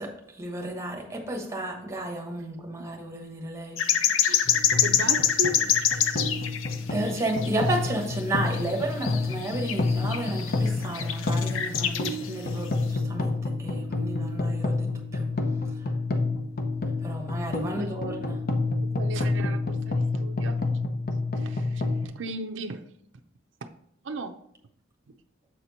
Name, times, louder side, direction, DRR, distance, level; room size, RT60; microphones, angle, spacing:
voice 1, 0.0-4.2 6.0-6.3 6.9-15.3 15.6-16.0 17.0-18.4, right 1 dB, 15° right, 2 dB, 1.1 m, -33 dB
sound 1, 3.8-6.8 7.1-7.9 8.2-12.3 12.7-12.8, left 9 dB, 85° left, 0.5 m, -26 dB
sound 2, 4.4-22.1, left 3 dB, 50° left, 0.7 m, -29 dB
voice 2, 4.8-5.5 17.8-17.9 18.8-20.6 21.3-22.8 23.6-23.7 24.0-24.3 25.1-25.2, right 2 dB, 65° right, 6 dB, 0.5 m, -36 dB
7.5 x 4.4 x 4.0 m, 0.71 s
head